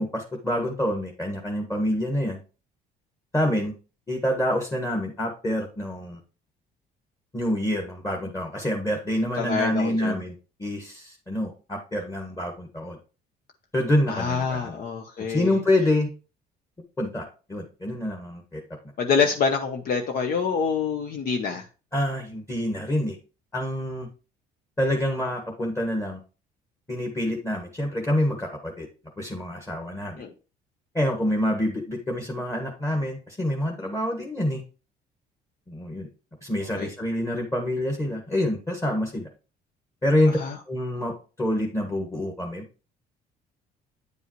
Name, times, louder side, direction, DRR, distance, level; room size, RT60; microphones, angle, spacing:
voice 1, 0.0-2.4 3.3-3.7 4.1-6.2 7.3-13.0 13.7-14.8 15.3-16.1 17.0-18.6 21.9-23.2 23.5-24.1 24.8-26.2 26.9-28.9 29.2-30.2 30.9-34.6 35.7-36.1 36.4-39.3 40.0-40.4 40.7-41.1 41.4-42.6, left 1 dB, 15° left, 1 dB, 1.5 m, -27 dB
voice 2, 9.4-10.1 14.1-15.5 19.0-21.6 30.2-30.3 36.7-36.9 40.3-40.6, left 5 dB, 60° left, 5 dB, 0.9 m, -26 dB
9.3 x 5.4 x 3.1 m, 0.34 s
cardioid pair, 110°, 17 cm